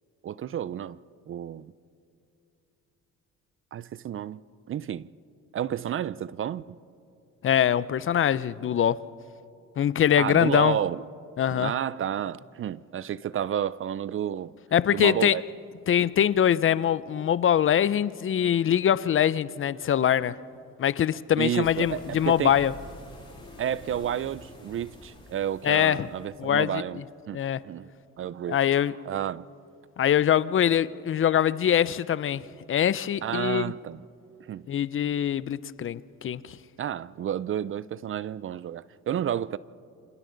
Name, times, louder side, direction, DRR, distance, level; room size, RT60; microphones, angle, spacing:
voice 1, 0.2-1.0 1.3-1.7 3.7-4.4 4.7-5.1 5.5-6.8 10.2-11.0 11.5-14.5 14.9-15.4 21.4-22.5 23.6-27.0 27.3-27.9 28.2-28.6 29.1-29.4 33.2-34.0 34.4-34.7 36.8-39.6, right 10 dB, 45° right, 0.4 m, -31 dB
voice 2, 7.4-9.0 9.8-10.8 11.4-11.7 14.7-15.4 15.9-20.4 20.8-22.7 25.6-26.1 26.4-26.8 27.3-27.6 28.5-28.9 30.0-32.4 32.7-33.7 34.7-36.6, left 9 dB, 45° left, 0.5 m, -23 dB
sound 1, 21.6-26.6, left 1 dB, 15° left, 5.7 m, -48 dB
29.5 x 26.0 x 3.9 m
cardioid pair, 90°, 30 cm